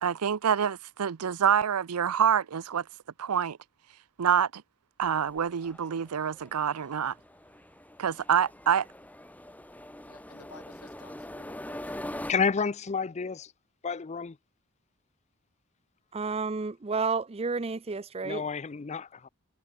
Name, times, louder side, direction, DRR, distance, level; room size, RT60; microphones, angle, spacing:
voice 1, 0.0-2.8 3.2-3.6 4.2-4.6 5.0-7.1 8.0-8.9, right 8 dB, 85° right, 0.6 m, -26 dB
sound 1, 5.0-12.3, left 1 dB, 5° left, 1.3 m, -43 dB
voice 2, 10.1-12.3, left 4 dB, 80° left, 3.4 m, -55 dB
voice 3, 12.3-13.5 13.8-14.3 18.2-19.3, left 5 dB, 30° left, 0.5 m, -30 dB
voice 4, 16.1-18.4, right 4 dB, 25° right, 0.5 m, -31 dB
head